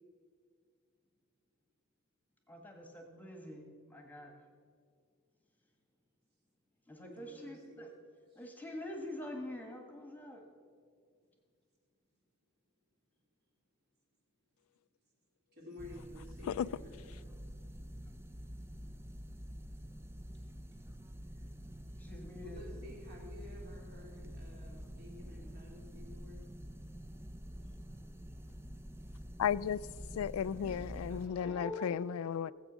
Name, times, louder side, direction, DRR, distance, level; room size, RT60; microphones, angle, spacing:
voice 1, 2.5-4.3 6.9-7.9 8.3-10.4 22.0-22.6 31.4-31.9, left 1 dB, 10° left, 1.5 m, -45 dB
voice 2, 7.0-7.8 8.3-8.4 15.5-16.9 21.3-21.4 22.4-26.4 30.4-31.6, left 1 dB, 50° right, 3.5 m, -53 dB
sound 1, 15.8-31.3, equal, 10° right, 0.5 m, -47 dB
voice 3, 29.4-29.8 30.1-32.5, left 8 dB, 85° left, 0.3 m, -34 dB
15.5 x 8.0 x 6.2 m
head